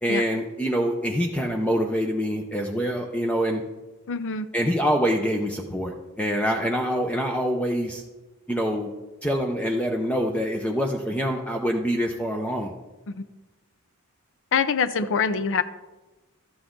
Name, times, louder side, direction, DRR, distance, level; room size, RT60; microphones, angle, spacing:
voice 1, 0.0-3.6 4.5-8.0 8.5-8.9 9.2-12.7, equal, 5° left, 2 dB, 0.7 m, -25 dB
voice 2, 4.1-4.5 13.1-13.3 14.5-15.6, left 6 dB, 60° left, 11 dB, 0.6 m, -24 dB
13.0 x 8.4 x 3.8 m, 1.1 s
head